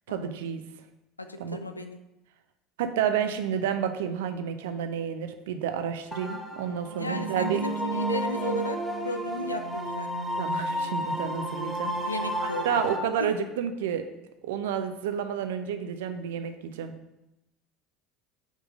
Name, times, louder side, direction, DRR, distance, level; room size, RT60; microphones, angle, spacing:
voice 1, 0.1-0.6 1.4-1.6 2.8-7.6 10.4-12.1 12.4-14.0 14.4-16.9, right 8 dB, 65° right, 9 dB, 0.5 m, -30 dB
voice 2, 1.2-2.0 7.0-10.1 12.0-13.3, left 2 dB, 85° left, 8 dB, 0.4 m, -35 dB
sound 1, 6.1-13.0, right 1 dB, 5° left, 0.9 m, -31 dB
5.1 x 3.8 x 5.0 m, 0.92 s
figure-of-eight pair, 70°, 0 cm